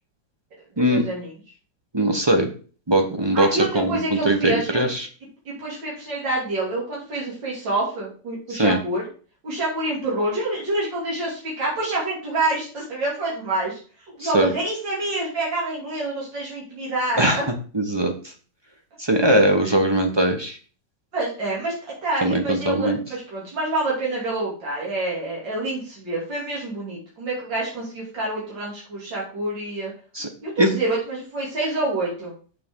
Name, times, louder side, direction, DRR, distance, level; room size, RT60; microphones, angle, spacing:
voice 1, 0.9-1.3 3.3-4.8 5.5-9.0 9.4-13.8 14.2-17.4 21.1-21.7 22.0-29.9 30.4-32.3, right 2 dB, 80° right, -5 dB, 3.4 m, -27 dB
voice 2, 1.9-2.5 2.9-5.1 8.5-8.8 14.2-14.5 17.2-17.4 17.7-18.1 19.0-20.6 22.2-23.0 30.1-30.3 30.6-30.7, right 1 dB, 25° right, 4 dB, 0.6 m, -20 dB
7.1 x 6.6 x 3.7 m, 0.39 s
omnidirectional pair, 2.0 m